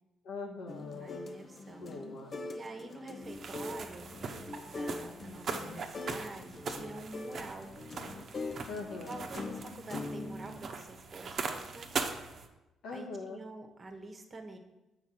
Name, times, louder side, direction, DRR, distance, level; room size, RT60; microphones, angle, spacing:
voice 1, 0.2-1.3 1.8-2.3 8.7-9.3 12.8-13.4, left 3 dB, 90° left, 1 dB, 1.5 m, -42 dB
sound 1, 0.7-10.6, left 3 dB, 40° left, 0.7 m, -43 dB
voice 2, 0.9-1.9 2.5-4.1 4.7-7.7 8.9-11.9 12.9-14.6, right 2 dB, 35° right, 5 dB, 1.1 m, -47 dB
sound 2, 3.2-12.5, right 5 dB, 55° right, 0.9 m, -41 dB
7.2 x 4.8 x 6.2 m, 0.99 s
cardioid pair, 90°, 0 cm